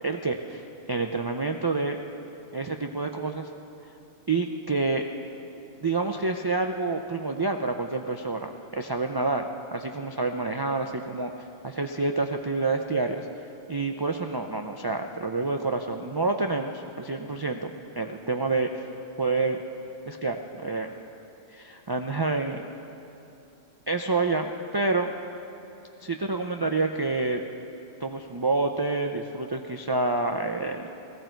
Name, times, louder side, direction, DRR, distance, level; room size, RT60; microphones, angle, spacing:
voice 1, 0.0-2.0 2.5-3.5 4.3-5.0 5.8-9.4 9.7-13.3 13.7-18.8 19.2-19.6 20.1-21.0 21.5-22.6 23.9-25.1 26.0-27.4 28.0-30.9, right 3 dB, 35° right, 4 dB, 0.4 m, -28 dB
17.0 x 16.0 x 4.5 m, 2.8 s
omnidirectional pair, 1.1 m